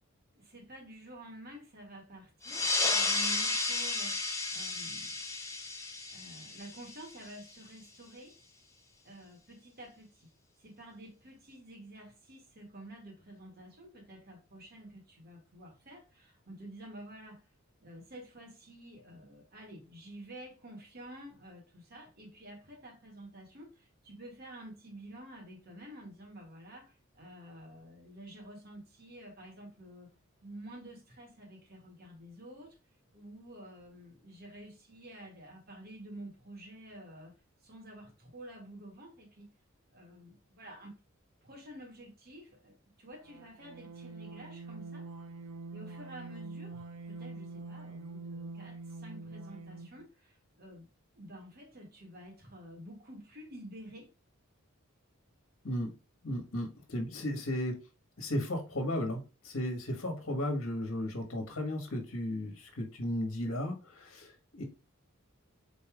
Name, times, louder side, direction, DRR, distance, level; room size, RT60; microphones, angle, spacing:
voice 1, 0.3-5.2 6.1-8.4 9.0-10.3 10.6-17.5 17.8-30.1 30.4-32.8 33.1-37.3 37.6-39.5 39.9-40.9 41.4-45.1 45.7-50.9 51.1-54.1, right 1 dB, 45° right, 1.9 m, -50 dB
sound 1, 2.4-7.5, left 3 dB, 15° left, 0.9 m, -33 dB
sound 2, 43.2-50.0, right 3 dB, 85° right, 0.9 m, -45 dB
voice 2, 56.2-57.8 58.2-64.6, left 1 dB, 70° left, 1.3 m, -35 dB
5.4 x 4.1 x 2.3 m
head